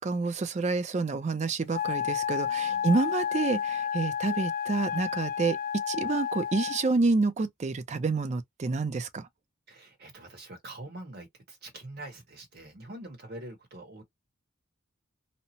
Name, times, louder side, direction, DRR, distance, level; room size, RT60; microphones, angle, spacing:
voice 1, 0.0-9.3, right 3 dB, 35° right, 0.4 m, -28 dB
Wind instrument woodwind instrument, 1.7-6.9, left 8 dB, 40° left, 0.3 m, -31 dB
voice 2, 9.7-14.0, right 1 dB, 50° right, 1.1 m, -44 dB
2.7 x 2.0 x 2.8 m
head